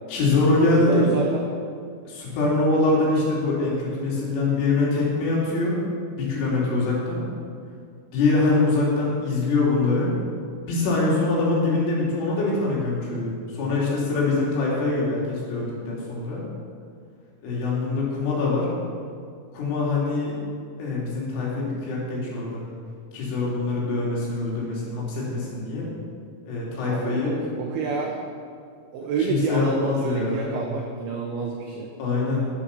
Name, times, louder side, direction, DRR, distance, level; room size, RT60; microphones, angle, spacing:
voice 1, 0.1-1.1 2.1-5.8 6.2-7.2 8.1-10.1 10.7-16.4 17.4-18.7 19.5-20.4 20.8-22.6 23.1-25.9 26.5-27.4 29.2-30.5 32.0-32.5, left 3 dB, 70° left, -5 dB, 5.2 m, -24 dB
voice 2, 0.7-1.4 26.8-28.2 28.9-31.9, right 4 dB, 85° right, 0 dB, 2.2 m, -28 dB
10.0 x 8.4 x 6.8 m, 2.3 s
omnidirectional pair, 5.9 m